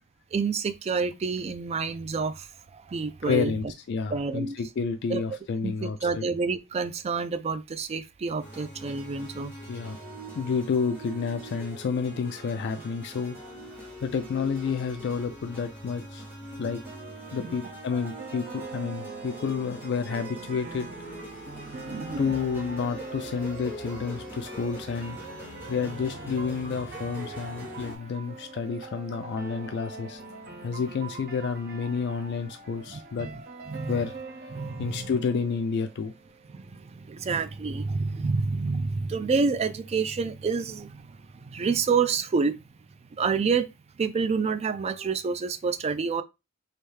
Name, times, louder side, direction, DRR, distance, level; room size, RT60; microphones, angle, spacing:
voice 1, 0.3-3.5 4.1-4.6 5.1-5.2 5.6-9.5 17.4-17.6 21.9-22.4 32.9-33.3 33.7-34.0 34.5-35.1 36.5-42.6 43.2-43.7 44.0-46.2, right 5 dB, 30° right, 0.3 m, -28 dB
voice 2, 3.2-6.2 9.7-10.0 10.3-13.4 14.0-16.2 16.6-16.8 17.3-20.9 22.2-25.2 25.7-30.2 30.6-33.3 33.9-34.1 34.8-36.1, left 5 dB, 55° left, 0.3 m, -30 dB
sound 1, 8.4-28.0, right 1 dB, 10° right, 1.2 m, -43 dB
sound 2, 17.6-36.6, right 3 dB, 45° right, 0.7 m, -43 dB
3.3 x 2.6 x 3.2 m
head